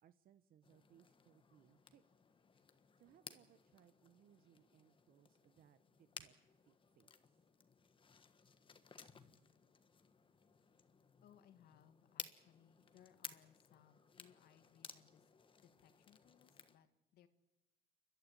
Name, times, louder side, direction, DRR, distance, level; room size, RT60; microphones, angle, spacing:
voice 1, 0.0-2.0 3.0-7.4, right 10 dB, 60° right, 12 dB, 0.9 m, -69 dB
sound 1, 0.6-16.8, left 5 dB, 30° left, 1.4 m, -58 dB
voice 2, 11.2-15.3 15.6-17.3, left 10 dB, 70° left, 10 dB, 1.8 m, -67 dB
29.5 x 12.5 x 9.8 m, 1.0 s
cardioid pair, 110°, 17 cm